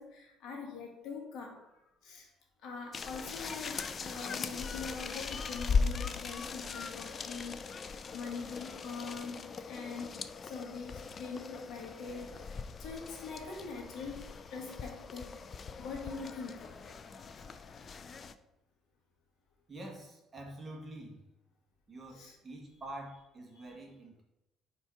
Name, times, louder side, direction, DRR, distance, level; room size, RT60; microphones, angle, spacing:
voice 1, 0.0-2.3 2.6-7.6 8.1-14.2 14.5-15.4 15.8-17.5 22.1-22.4 23.5-23.6, left 4 dB, 65° left, 0 dB, 1.8 m, -43 dB
sound 1, 2.9-18.3, left 5 dB, 30° left, 0.4 m, -39 dB
voice 2, 19.7-21.2 21.9-24.2, right 1 dB, 20° right, -1 dB, 1.4 m, -46 dB
4.5 x 4.5 x 5.6 m, 0.90 s
cardioid pair, 140°, 0 cm